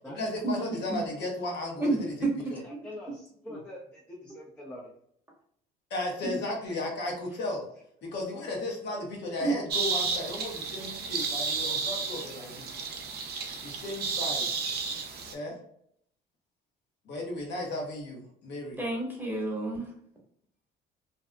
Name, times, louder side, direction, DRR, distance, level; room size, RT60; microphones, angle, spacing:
voice 1, 0.1-2.1 2.5-2.6 5.9-7.6 8.0-12.7 13.6-14.5 15.3-15.6 17.1-18.8, left 1 dB, 60° left, 0 dB, 1.0 m, -35 dB
voice 2, 1.8-2.3 6.2-6.4 9.4-9.5 18.8-19.9, right 2 dB, 10° right, -2 dB, 1.0 m, -29 dB
voice 3, 2.5-4.9, left 1 dB, 5° left, -4 dB, 0.5 m, -45 dB
sound 1, 9.7-15.3, right 5 dB, 50° right, 0.6 m, -32 dB
2.6 x 2.3 x 2.2 m, 0.68 s
supercardioid pair, 80°, 20 cm